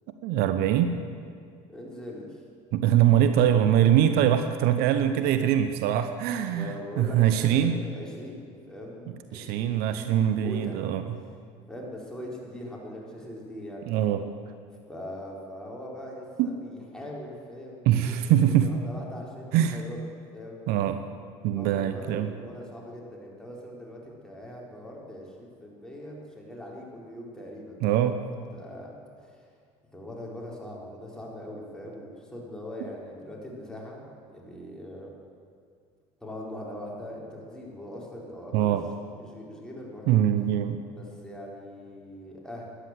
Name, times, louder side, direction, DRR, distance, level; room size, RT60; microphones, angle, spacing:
voice 1, 0.2-0.9 2.7-7.7 9.3-11.0 13.9-14.2 16.4-16.5 17.8-18.7 19.5-19.8 20.7-21.0 21.4-22.3 27.8-28.2 38.5-38.8 40.1-40.8, right 10 dB, 65° right, 9 dB, 0.9 m, -23 dB
voice 2, 1.7-2.4 6.5-10.9 11.7-13.8 14.9-18.2 18.6-20.1 20.3-20.7 21.6-28.2 28.5-28.9 29.2-29.5 29.9-35.1 36.2-38.8 39.2-40.2 41.0-42.7, left 1 dB, 5° left, -3 dB, 4.3 m, -41 dB
13.0 x 10.5 x 7.7 m, 2.2 s
hypercardioid pair, 80°, 17 cm